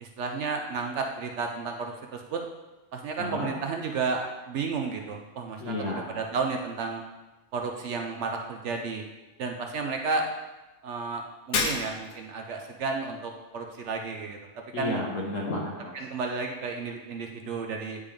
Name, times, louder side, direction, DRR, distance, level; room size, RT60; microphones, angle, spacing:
voice 1, 0.0-2.4 2.9-5.7 6.1-7.0 7.5-9.0 9.4-10.3 10.8-14.4 14.8-15.0 15.9-18.0, right 4 dB, 65° right, 3 dB, 0.8 m, -32 dB
voice 2, 3.2-3.5 5.6-6.1 14.7-15.9, left 2 dB, 65° left, -2 dB, 1.3 m, -32 dB
Shatter, 11.5-12.3, left 4 dB, 85° left, 1.3 m, -29 dB
9.6 x 3.4 x 3.4 m, 1.1 s
omnidirectional pair, 1.5 m